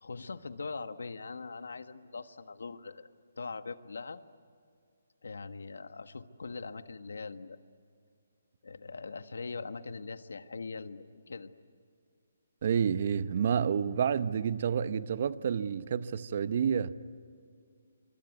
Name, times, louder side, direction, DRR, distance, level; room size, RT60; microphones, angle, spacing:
voice 1, 0.0-3.1 3.4-4.2 5.2-7.6 8.6-11.5, left 4 dB, 90° left, 1.4 m, -41 dB
voice 2, 12.6-16.9, right 7 dB, 45° right, 0.9 m, -29 dB
26.0 x 24.5 x 9.4 m
hypercardioid pair, 165°, 0 cm